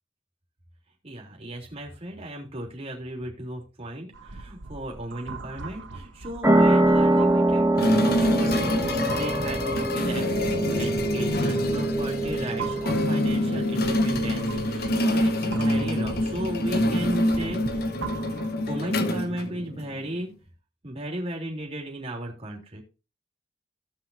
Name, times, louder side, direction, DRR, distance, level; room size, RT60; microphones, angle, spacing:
voice 1, 1.0-17.8 18.7-20.3 20.8-22.8, right 1 dB, 35° right, -1 dB, 3.4 m, -35 dB
sound 1, 4.1-18.9, right 3 dB, 85° right, 1.1 m, -41 dB
sound 2, 6.4-13.6, right 1 dB, 10° right, 1.2 m, -24 dB
sound 3, 7.8-20.0, left 1 dB, 55° left, 1.1 m, -26 dB
17.5 x 5.9 x 2.7 m, 0.29 s
head